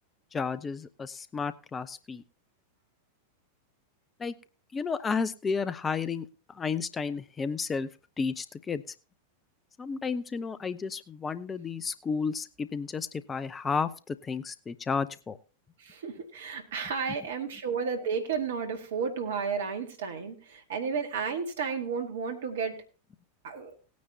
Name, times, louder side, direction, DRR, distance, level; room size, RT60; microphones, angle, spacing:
voice 1, 0.3-2.2 4.2-4.3 4.7-6.3 6.5-7.9 8.2-8.8 9.8-15.4, left 5 dB, 20° left, 14 dB, 0.7 m, -32 dB
voice 2, 15.8-22.8 23.4-23.7, right 6 dB, 60° right, 6 dB, 1.9 m, -32 dB
18.5 x 9.4 x 2.8 m, 0.33 s
figure-of-eight pair, 90°, 0 cm